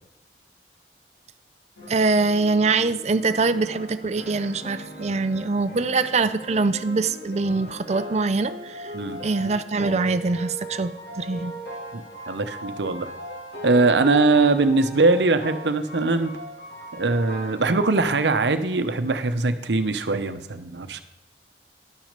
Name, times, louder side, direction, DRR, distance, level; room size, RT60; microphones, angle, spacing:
sound 1, 1.8-17.8, equal, 65° left, 3.1 m, -39 dB
voice 1, 1.9-8.9 9.2-11.5, right 3 dB, 40° right, 11 dB, 0.5 m, -23 dB
voice 2, 11.9-13.1 13.6-16.3 16.9-21.0, right 3 dB, 75° right, 10 dB, 0.8 m, -21 dB
11.0 x 6.2 x 6.6 m, 0.87 s
head